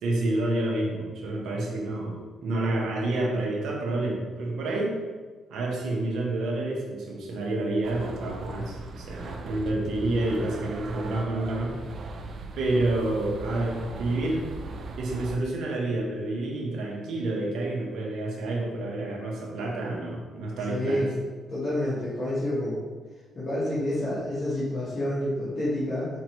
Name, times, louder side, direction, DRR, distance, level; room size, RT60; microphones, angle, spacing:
voice 1, 0.0-2.1 2.4-4.9 5.5-11.7 12.0-12.2 12.6-14.4 15.0-21.1, right 2 dB, 75° right, -2 dB, 1.1 m, -29 dB
sound 1, 7.8-15.4, right 3 dB, 60° right, 0.4 m, -39 dB
voice 2, 20.7-21.1 21.5-22.8 23.3-26.1, left 1 dB, 40° left, -10 dB, 1.4 m, -28 dB
5.2 x 3.1 x 3.0 m, 1.4 s
cardioid pair, 90°, 0 cm